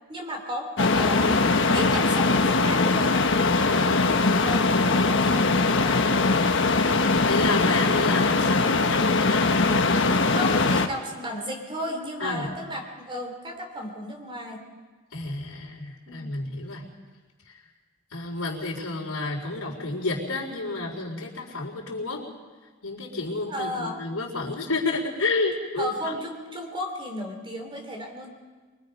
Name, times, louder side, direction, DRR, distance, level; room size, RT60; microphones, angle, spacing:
voice 1, 0.1-3.3 4.0-6.4 10.3-14.6 16.1-16.3 23.5-24.0 25.8-28.3, equal, 25° right, 3 dB, 3.2 m, -34 dB
sound 1, 0.8-10.9, left 3 dB, 60° left, 1.3 m, -21 dB
voice 2, 3.5-4.1 7.2-9.5 12.2-12.5 15.1-16.8 18.1-22.2 22.8-26.1, left 3 dB, 85° left, -1 dB, 4.0 m, -30 dB
23.5 x 23.0 x 5.4 m, 1.4 s
head